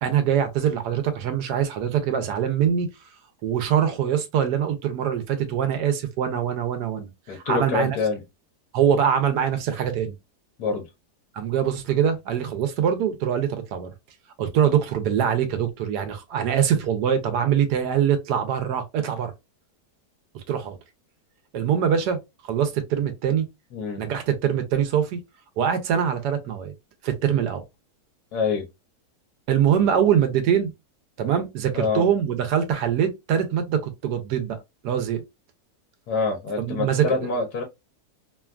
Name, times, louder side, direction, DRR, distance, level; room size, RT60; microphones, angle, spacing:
voice 1, 0.0-2.9 3.4-8.0 8.7-10.1 11.3-13.9 14.4-19.3 20.5-20.8 21.5-22.2 22.5-23.5 24.0-25.2 25.6-26.7 27.0-27.6 29.5-30.7 31.2-34.6 34.8-35.2 36.6-37.3, right 8 dB, 85° right, 1.2 m, -23 dB
voice 2, 7.3-8.2 10.6-10.9 23.7-24.1 28.3-28.6 29.7-29.9 31.7-32.1 36.1-37.6, left 4 dB, 75° left, 1.2 m, -26 dB
3.1 x 2.2 x 2.3 m
omnidirectional pair, 1.7 m